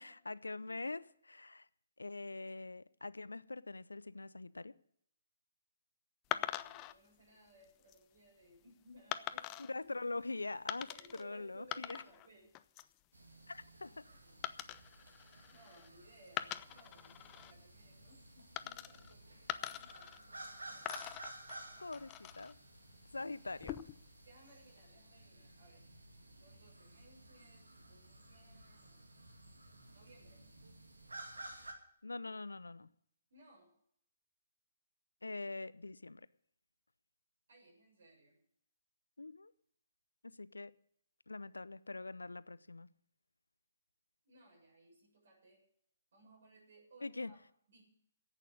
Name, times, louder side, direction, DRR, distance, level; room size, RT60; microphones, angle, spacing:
voice 1, 0.0-1.7 2.0-4.7 9.6-10.9 11.2-12.0 13.5-14.0 21.8-22.5 23.1-23.7 32.0-32.9 35.2-36.3 39.2-39.5 40.2-40.7 41.3-42.9 47.0-47.3, left 3 dB, 80° left, 0.6 m, -43 dB
sound 1, 6.3-6.9 7.6-8.0 9.1-9.7 10.7-11.2 11.5-12.3 12.5-13.0 14.4-15.9 16.3-17.5 18.5-19.1 19.5-20.5 20.8-22.5 23.5-24.1, left 14 dB, 25° left, 0.6 m, -43 dB
voice 2, 6.3-9.5 10.7-12.5 13.6-14.5 15.5-21.1 23.1-23.9 24.2-25.9 26.4-29.2 29.9-30.4 33.3-33.7 37.5-38.4 44.2-45.6 46.1-47.4 47.7-47.8, right 2 dB, 60° right, 7.2 m, -63 dB
sound 2, 13.1-31.7, right 1 dB, 80° right, 2.3 m, -54 dB
10.5 x 8.5 x 9.5 m
figure-of-eight pair, 130°, 0 cm